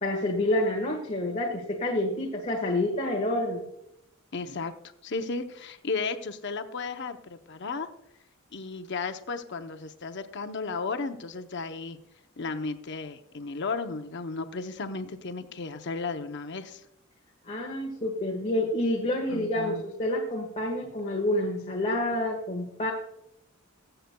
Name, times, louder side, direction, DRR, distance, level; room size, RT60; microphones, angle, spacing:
voice 1, 0.0-3.6 17.5-22.9, left 1 dB, 30° left, -1 dB, 1.4 m, -28 dB
voice 2, 4.3-4.7 5.0-7.9 8.5-12.0 12.4-16.8 19.3-19.8, left 4 dB, 55° left, 8 dB, 0.7 m, -34 dB
20.5 x 7.9 x 2.2 m, 0.79 s
head